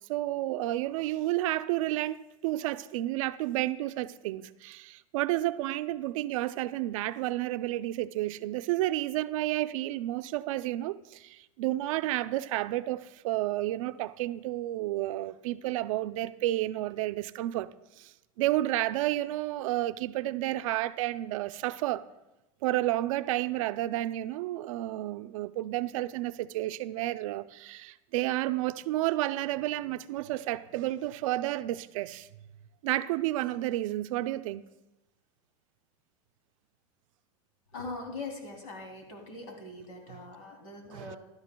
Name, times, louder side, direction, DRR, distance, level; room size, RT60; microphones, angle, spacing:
voice 1, 0.1-17.7 18.0-22.1 22.6-32.3 32.8-34.6 40.9-41.2, right 15 dB, 75° right, 0.5 m, -31 dB
voice 2, 37.7-41.2, left 3 dB, 85° left, 2.9 m, -41 dB
16.0 x 11.5 x 2.2 m
supercardioid pair, 130°, 17 cm